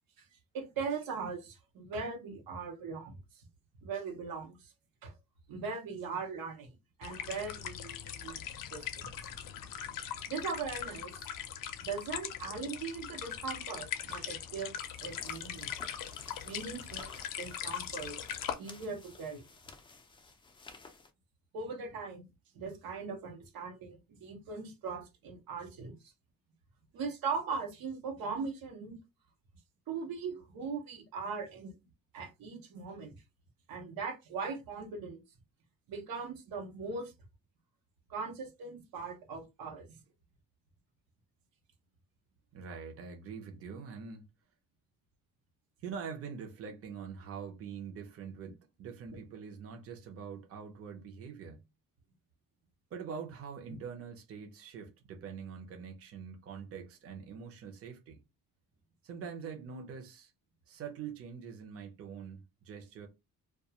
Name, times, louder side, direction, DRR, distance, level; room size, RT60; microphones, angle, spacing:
voice 1, 0.5-3.2 3.8-4.7 5.0-5.1 5.5-6.7 7.0-8.4 8.7-9.3 10.3-11.3 11.8-14.7 15.0-15.7 16.4-18.2 18.6-19.4 21.5-22.2 22.5-26.0 26.9-29.0 29.9-31.7 32.1-33.2 33.7-35.2 35.9-37.1 38.1-39.9 49.1-49.2, right 5 dB, 85° right, 0.8 m, -40 dB
sound 1, 7.0-18.5, left 9 dB, 70° left, 0.5 m, -41 dB
sound 2, 14.8-21.1, left 3 dB, 15° left, 0.3 m, -54 dB
voice 2, 42.5-44.3 45.8-51.6 52.9-58.2 59.0-60.3 60.7-63.1, right 6 dB, 40° right, 0.6 m, -44 dB
2.3 x 2.3 x 2.8 m
cardioid pair, 145°, 34 cm